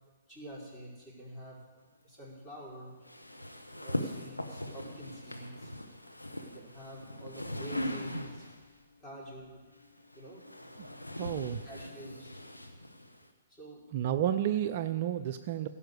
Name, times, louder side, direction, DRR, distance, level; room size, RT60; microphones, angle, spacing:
voice 1, 0.3-1.6 2.0-3.1 3.7-5.8 6.4-8.7 9.0-9.6 10.1-10.4 11.6-12.3 13.5-13.9, right 1 dB, 15° left, -6 dB, 4.6 m, -47 dB
sound 1, 3.1-8.7 9.7-13.3, left 1 dB, 90° left, 1.2 m, -40 dB
voice 2, 11.2-11.6 13.9-15.7, right 11 dB, 40° right, 9 dB, 0.5 m, -31 dB
16.0 x 5.7 x 8.0 m, 1.3 s
figure-of-eight pair, 120°, 0 cm